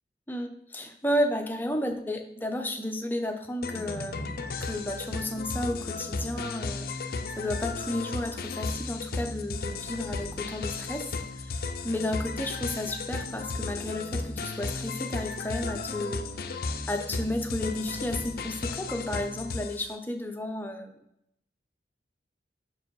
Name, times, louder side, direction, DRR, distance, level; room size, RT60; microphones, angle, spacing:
voice 1, 0.3-4.3 4.6-16.2 16.9-21.0, left 1 dB, 10° left, 4 dB, 0.6 m, -32 dB
sound 1, 3.6-19.9, left 3 dB, 55° left, 0.5 m, -34 dB
6.2 x 4.8 x 4.7 m, 0.78 s
head